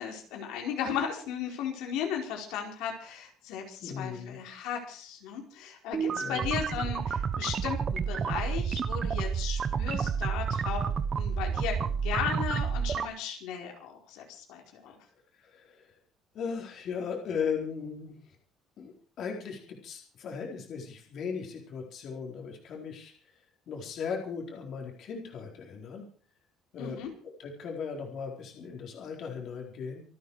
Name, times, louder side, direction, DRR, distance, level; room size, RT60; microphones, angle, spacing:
voice 1, 0.0-10.8 11.2-15.0 26.8-27.1, left 8 dB, 85° left, 2 dB, 4.6 m, -36 dB
voice 2, 3.8-4.4 6.1-6.5 14.9-15.0 15.4-15.9 16.3-18.2 18.8-23.1 23.7-26.1 26.7-30.0, left 6 dB, 45° left, 1 dB, 4.3 m, -37 dB
sound 1, 5.9-13.0, right 6 dB, 30° right, 1.1 m, -30 dB
26.5 x 9.4 x 5.0 m, 0.43 s
cardioid pair, 170°, 0 cm